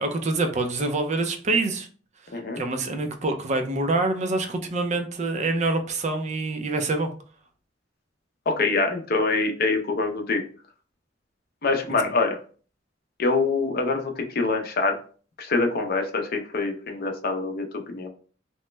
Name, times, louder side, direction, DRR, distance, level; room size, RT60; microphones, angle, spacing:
voice 1, 0.0-1.9 2.6-7.1, right 2 dB, 40° right, 6 dB, 0.4 m, -26 dB
voice 2, 8.5-10.4 11.6-12.4 13.2-15.0 15.4-18.1, left 3 dB, 55° left, 4 dB, 0.6 m, -25 dB
2.9 x 2.1 x 3.2 m, 0.40 s
head